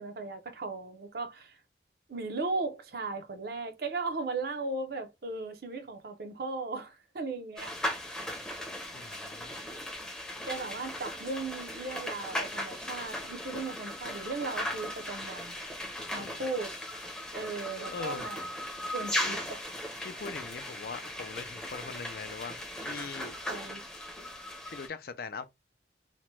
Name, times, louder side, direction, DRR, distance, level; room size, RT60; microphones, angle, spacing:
voice 1, 0.0-1.6 2.1-7.7 10.4-15.6 16.1-16.7 17.3-18.5 18.9-19.6 23.5-23.9, right 3 dB, 55° right, 0.7 m, -37 dB
sound 1, 7.6-24.9, left 1 dB, 5° left, 0.6 m, -38 dB
voice 2, 8.9-9.6 16.2-16.4 17.9-18.3 19.2-19.4 20.0-23.3 24.0-24.2 24.7-25.5, left 5 dB, 55° left, 0.4 m, -42 dB
2.9 x 2.2 x 3.0 m
head